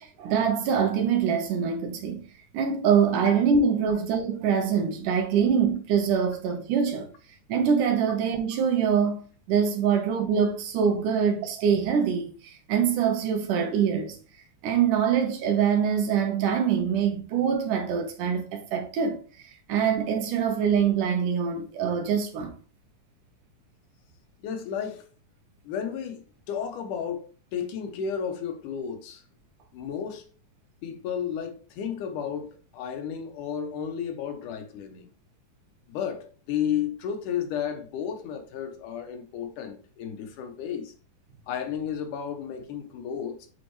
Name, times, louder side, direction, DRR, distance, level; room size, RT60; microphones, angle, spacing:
voice 1, 0.0-2.3 2.5-7.1 7.5-14.2 14.6-19.2 19.7-22.5, right 7 dB, 85° right, 2.7 m, -24 dB
voice 2, 24.4-25.1 25.6-29.2 29.7-30.3 30.8-35.1 35.9-40.9 41.5-43.5, left 8 dB, 85° left, 2.5 m, -33 dB
8.3 x 4.5 x 3.1 m
omnidirectional pair, 3.5 m